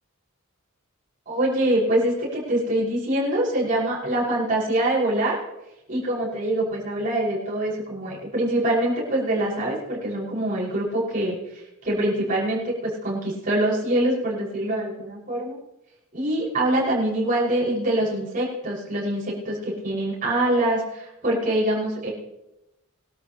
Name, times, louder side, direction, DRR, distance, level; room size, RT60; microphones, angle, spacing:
voice 1, 1.3-5.4 5.9-15.6 16.1-22.1, right 1 dB, 40° right, -6 dB, 5.7 m, -24 dB
22.0 x 13.0 x 3.0 m, 0.92 s
head